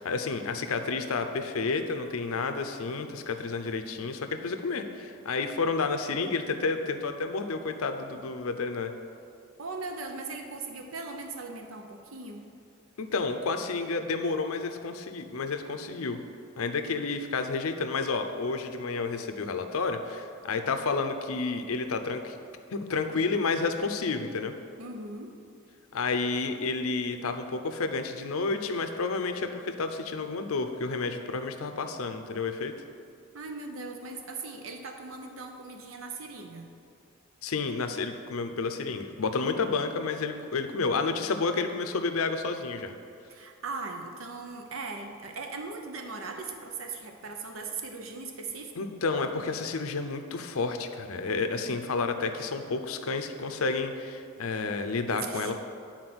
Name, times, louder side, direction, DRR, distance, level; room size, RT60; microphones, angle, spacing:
voice 1, 0.0-8.9 13.0-16.2 16.6-22.4 22.7-24.5 25.9-32.7 37.4-42.9 48.8-55.6, left 4 dB, 85° left, 7 dB, 0.6 m, -30 dB
voice 2, 9.6-12.5 24.8-25.4 33.3-36.7 43.3-48.9 51.6-51.8 55.1-55.6, right 3 dB, 70° right, 4 dB, 0.7 m, -39 dB
9.5 x 4.4 x 6.1 m, 2.4 s
head